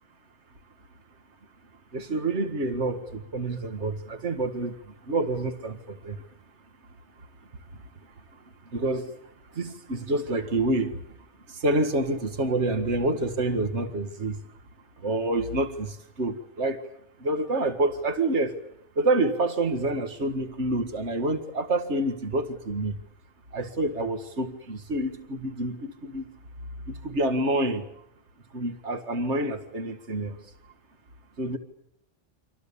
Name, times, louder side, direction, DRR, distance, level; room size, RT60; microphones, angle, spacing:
voice 1, 1.9-4.8 5.1-6.2 8.7-9.1 9.6-11.0 11.5-14.4 15.0-16.8 17.2-18.6 19.0-23.0 23.5-26.2 26.9-27.9 28.5-30.4 31.4-31.6, right 2 dB, 70° right, 8 dB, 2.1 m, -27 dB
30.0 x 26.0 x 7.1 m, 0.73 s
omnidirectional pair, 1.2 m